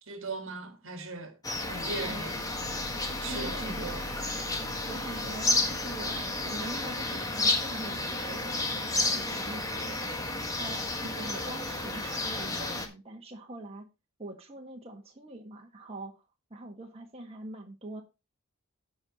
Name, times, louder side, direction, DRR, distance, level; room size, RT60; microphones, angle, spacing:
voice 1, 0.1-1.4 1.7-2.4 3.1-4.0 11.2-11.3, right 3 dB, 60° right, 1.8 m, -39 dB
sound 1, 1.4-12.9, left 2 dB, 15° left, 1.5 m, -32 dB
voice 2, 1.9-2.3 3.2-4.0 4.9-10.8 11.2-13.9 14.2-16.1 16.5-18.0, right 1 dB, 25° right, 1.6 m, -43 dB
16.0 x 5.4 x 2.9 m
head